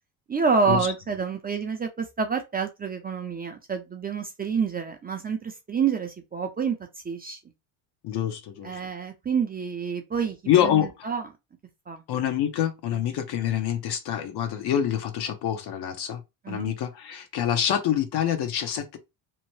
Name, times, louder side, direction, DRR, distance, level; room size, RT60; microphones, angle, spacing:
voice 1, 0.3-6.8 7.0-7.4 8.6-11.3 11.9-12.0 16.4-16.7, right 5 dB, 20° right, 0.5 m, -28 dB
voice 2, 8.0-8.7 10.5-10.9 12.1-16.2 16.5-19.0, left 10 dB, 55° left, 0.8 m, -26 dB
2.9 x 2.1 x 3.0 m
cardioid pair, 105°, 46 cm